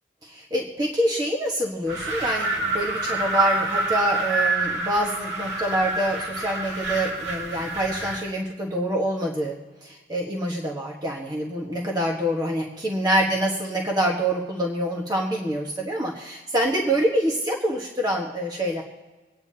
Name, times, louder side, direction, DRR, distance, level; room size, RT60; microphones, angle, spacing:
voice 1, 0.2-18.8, right 1 dB, 25° right, -2 dB, 1.4 m, -26 dB
Wind, 1.9-8.3, right 3 dB, 90° right, 1.8 m, -27 dB
26.0 x 9.5 x 2.8 m, 1.2 s
head